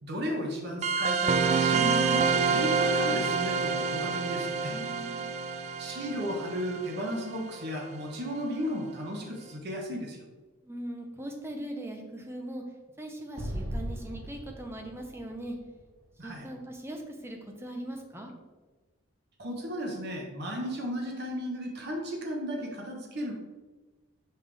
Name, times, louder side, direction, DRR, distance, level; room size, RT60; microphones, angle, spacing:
voice 1, 0.0-4.7 5.8-10.2 16.2-16.5 19.4-23.3, equal, 55° right, 0 dB, 1.1 m, -34 dB
sound 1, 0.8-7.9, right 5 dB, 35° right, 0.3 m, -28 dB
voice 2, 4.7-5.4 10.6-12.6 13.0-15.6 16.2-18.3, right 1 dB, 10° right, 3 dB, 0.8 m, -40 dB
Explosion, 13.4-16.6, equal, 90° right, 1.2 m, -38 dB
5.7 x 5.5 x 3.4 m, 1.3 s
head